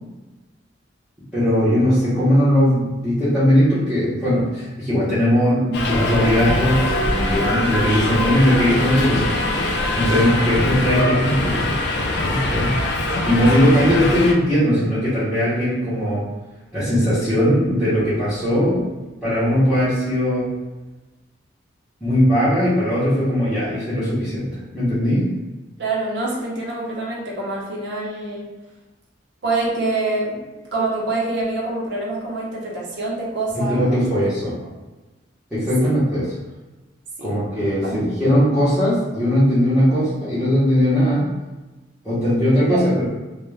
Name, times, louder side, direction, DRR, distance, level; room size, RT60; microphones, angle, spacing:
voice 1, 1.3-9.4 9.9-11.7 12.3-12.7 13.3-16.3 16.7-18.8 19.2-20.5 22.0-24.5 24.7-25.3 33.5-34.6 35.5-36.3 37.2-41.3 42.0-43.0, equal, 5° right, -14 dB, 0.8 m, -19 dB
Subway metro underground, 5.7-14.3, left 1 dB, 60° left, 0.4 m, -22 dB
voice 2, 25.8-28.5 29.4-34.2 34.6-34.7 35.8-35.9 37.2-37.4 37.8-38.0 42.7-42.8, right 2 dB, 65° right, -3 dB, 0.7 m, -26 dB
2.3 x 2.1 x 3.2 m, 1.1 s
head